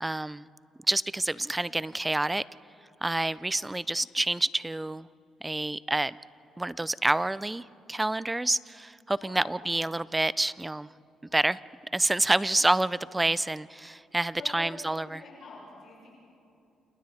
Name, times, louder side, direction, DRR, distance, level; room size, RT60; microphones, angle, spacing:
voice 1, 0.0-0.5 0.9-2.4 3.0-5.1 5.4-6.2 6.6-10.9 11.3-11.6 11.9-15.2, right 2 dB, 10° right, 19 dB, 0.4 m, -28 dB
voice 2, 9.2-9.7 14.4-16.1, left 3 dB, 60° left, -4 dB, 6.6 m, -46 dB
29.5 x 28.0 x 4.2 m, 2.6 s
cardioid pair, 95°, 0 cm